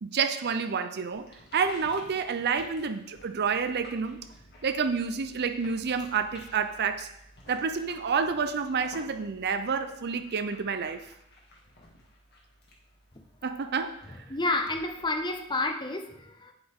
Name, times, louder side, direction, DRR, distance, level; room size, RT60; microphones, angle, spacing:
voice 1, 0.0-1.3 1.5-4.2 4.6-7.1 7.5-11.0 13.4-14.0, right 5 dB, 45° right, 10 dB, 0.5 m, -29 dB
sound 1, 1.1-15.7, left 1 dB, 50° left, 1.9 m, -53 dB
voice 2, 14.1-16.5, left 2 dB, 20° left, 5 dB, 0.7 m, -30 dB
9.0 x 7.8 x 3.7 m, 0.77 s
head